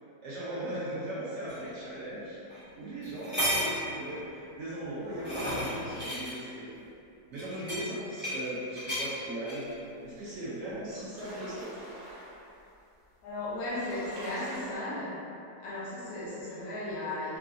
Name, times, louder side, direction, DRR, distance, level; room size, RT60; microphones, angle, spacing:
voice 1, 0.2-2.4 2.7-6.9 7.3-9.6 10.0-11.7, right 1 dB, 85° right, -9 dB, 0.6 m, -38 dB
sound 1, 1.5-1.6 2.5-2.6 3.0-3.8 4.8-6.3 7.3-8.5 8.7-9.1 9.5-9.7, equal, 15° right, 0.4 m, -33 dB
sound 2, 10.3-10.4 10.7-12.5 13.2-13.3 13.5-14.7, right 1 dB, 65° right, 1.2 m, -45 dB
voice 2, 13.2-15.2 15.6-17.4, left 1 dB, 60° left, -7 dB, 0.7 m, -35 dB
3.2 x 2.4 x 2.5 m, 2.6 s
omnidirectional pair, 1.9 m